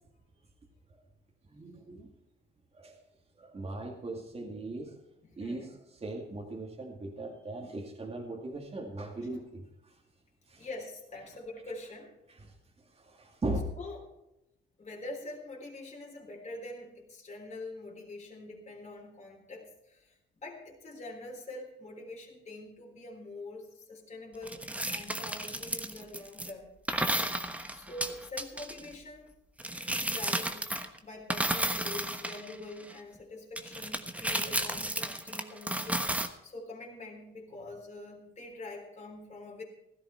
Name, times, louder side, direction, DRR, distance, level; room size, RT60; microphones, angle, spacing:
voice 1, 1.5-2.1 2.7-3.0 3.4-5.0 5.4-10.0 10.5-10.7 12.3-12.4 13.0-13.6, right 2 dB, 30° right, -1 dB, 2.3 m, -39 dB
voice 2, 10.6-12.1 13.7-14.0 14.8-20.1 20.4-26.7 27.7-29.3 30.0-39.6, left 2 dB, 35° left, -1 dB, 3.7 m, -45 dB
sound 1, 24.5-26.5 26.9-28.8 29.6-31.0 31.3-32.9 33.6-36.3, right 1 dB, 5° right, 1.2 m, -33 dB
15.5 x 13.0 x 4.5 m, 0.90 s
cardioid pair, 90°, 20 cm